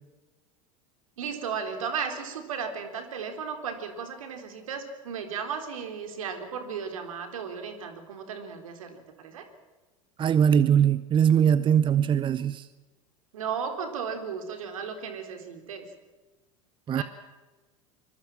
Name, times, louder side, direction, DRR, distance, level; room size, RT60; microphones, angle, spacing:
voice 1, 1.2-9.5 13.3-15.9 16.9-17.0, right 6 dB, 75° right, 6 dB, 3.9 m, -35 dB
voice 2, 10.2-12.7 16.9-17.0, right 8 dB, 30° right, 16 dB, 0.8 m, -21 dB
24.5 x 22.0 x 7.5 m, 1.2 s
hypercardioid pair, 85°, 18 cm